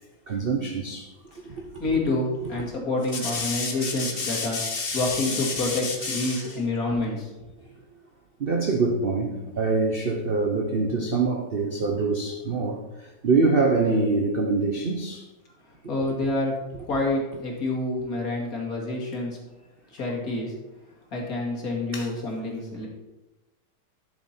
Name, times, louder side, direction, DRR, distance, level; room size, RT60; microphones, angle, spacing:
voice 1, 0.3-1.8 2.4-2.6 3.2-6.6 8.4-15.3 21.9-22.1, right 3 dB, 50° right, 2 dB, 0.6 m, -26 dB
voice 2, 1.8-4.6 4.9-7.3 15.9-16.6 16.8-19.4 19.9-20.5 21.1-22.9, left 2 dB, 45° left, -2 dB, 2.6 m, -28 dB
12.5 x 7.0 x 4.4 m, 1.1 s
omnidirectional pair, 2.2 m